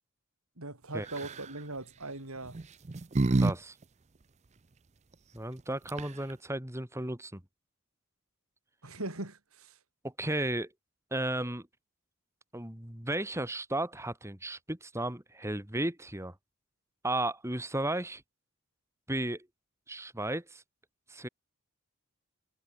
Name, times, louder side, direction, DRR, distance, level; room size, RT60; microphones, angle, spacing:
voice 1, 0.6-2.6 8.8-9.8, right 2 dB, 80° right, 5.3 m, -40 dB
sound 1, 1.1-1.5 2.5-3.5 3.8-3.9 5.6-5.7 5.9-6.3, right 2 dB, 30° right, 0.5 m, -28 dB
voice 2, 3.4-3.8 5.3-7.4 10.0-10.7 11.1-11.7 12.5-16.3 17.0-18.2 19.1-19.5 19.9-20.6 21.1-21.3, right 1 dB, 15° right, 2.7 m, -34 dB
head